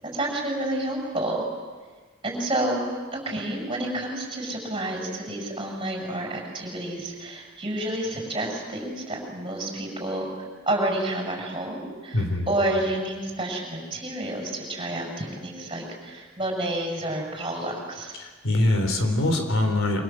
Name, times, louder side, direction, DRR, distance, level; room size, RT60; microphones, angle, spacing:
voice 1, 0.0-1.4 2.2-2.8 3.1-10.3 10.7-18.1, right 1 dB, 25° right, 0 dB, 7.6 m, -29 dB
voice 2, 12.1-12.5 18.2-20.0, left 1 dB, 75° left, 5 dB, 4.1 m, -23 dB
27.5 x 25.5 x 7.7 m, 1.4 s
head